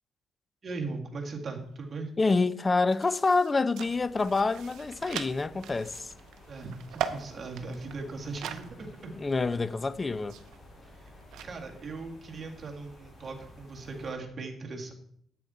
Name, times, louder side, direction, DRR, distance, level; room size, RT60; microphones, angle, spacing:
voice 1, 0.6-2.1 6.5-9.1 10.8-11.1 11.4-14.9, right 3 dB, 40° right, 1.8 m, -39 dB
sound 1, 1.9-2.0 2.2-8.7 9.0-9.1 9.9-11.5, right 9 dB, 80° right, 0.6 m, -41 dB
voice 2, 2.2-6.1 9.1-10.3, left 3 dB, 25° left, 0.4 m, -27 dB
sound 2, 3.8-14.1, left 2 dB, 75° left, 2.2 m, -55 dB
sound 3, 4.8-14.2, equal, ahead, 2.5 m, -57 dB
8.6 x 6.6 x 4.2 m
cardioid pair, 90°, 0 cm